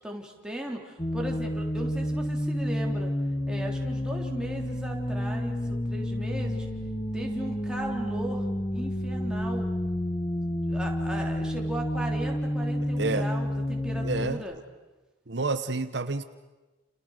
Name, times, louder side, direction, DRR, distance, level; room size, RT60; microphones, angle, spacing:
voice 1, 0.0-3.1 3.5-6.7 7.1-8.4 8.7-9.7 10.7-14.6, right 1 dB, 5° right, 0 dB, 3.7 m, -37 dB
sound 1, 1.0-14.3, equal, 25° left, 1.6 m, -30 dB
voice 2, 14.0-14.4 15.3-16.2, right 3 dB, 65° right, 10 dB, 1.0 m, -29 dB
29.5 x 29.5 x 6.6 m, 1.2 s
head